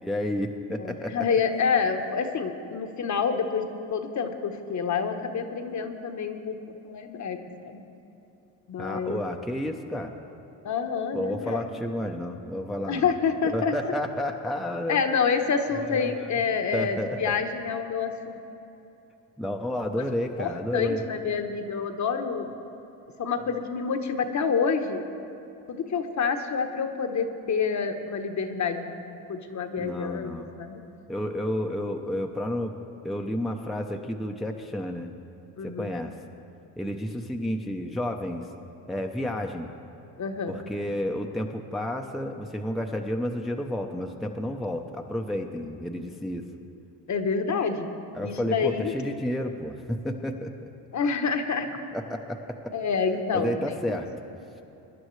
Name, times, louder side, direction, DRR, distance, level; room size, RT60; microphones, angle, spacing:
voice 1, 0.0-1.3 8.8-10.1 11.1-13.1 13.5-15.0 15.8-16.3 16.7-17.4 19.4-21.0 29.8-30.5 31.1-32.7 33.0-35.1 35.6-36.1 36.8-38.5 38.9-39.7 40.5-46.4 48.1-50.7 51.9-52.7 53.3-54.1, left 1 dB, ahead, 2 dB, 0.7 m, -31 dB
voice 2, 0.8-6.6 6.8-7.8 8.7-9.2 10.6-11.7 12.9-13.9 14.9-18.4 20.4-22.5 23.2-25.0 25.7-29.0 29.3-30.8 35.6-35.9 40.2-40.6 47.1-47.9 48.2-48.9 50.9-51.7 52.7-53.5 53.9-54.0, left 5 dB, 40° left, 6 dB, 1.1 m, -28 dB
22.0 x 10.5 x 3.2 m, 2.8 s
supercardioid pair, 85°, 44 cm